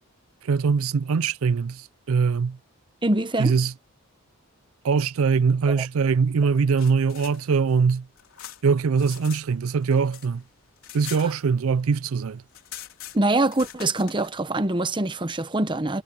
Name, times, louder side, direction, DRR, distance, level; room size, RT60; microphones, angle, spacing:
voice 1, 0.4-2.6 3.4-3.7 4.8-8.1 8.6-10.4 10.9-12.4, right 5 dB, 70° right, 0.4 m, -22 dB
voice 2, 3.0-3.5 5.8-5.9 13.1-16.0, right 2 dB, 20° right, 0.9 m, -24 dB
sound 1, 6.5-9.4 9.7-11.9 12.2-12.3 12.5-14.3, left 11 dB, 70° left, 3.6 m, -43 dB
head